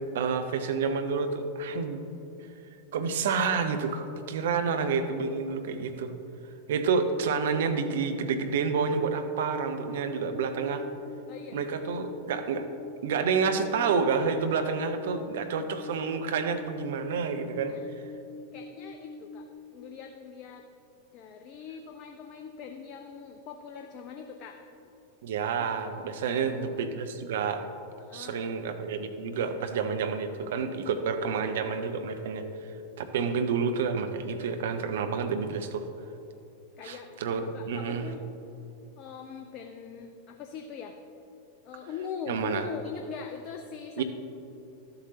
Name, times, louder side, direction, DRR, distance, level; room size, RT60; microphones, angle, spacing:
voice 1, 0.1-2.0 2.9-6.1 6.7-10.8 11.5-12.7 13.0-17.7 25.2-27.6 28.1-32.5 33.0-35.9 36.8-38.1 42.3-42.6 44.0-44.1, right 5 dB, 60° right, 7 dB, 0.6 m, -29 dB
sound 1, 7.3-19.6, left 2 dB, 5° left, 0.8 m, -45 dB
voice 2, 11.2-11.6 17.6-17.8 18.5-19.5 19.7-20.6 21.1-24.6 25.6-26.0 26.3-26.8 28.0-28.5 36.8-38.2 39.0-41.0 41.6-44.0, left 6 dB, 40° left, 4 dB, 0.5 m, -42 dB
12.5 x 7.7 x 2.8 m, 2.9 s
figure-of-eight pair, 90°, 0 cm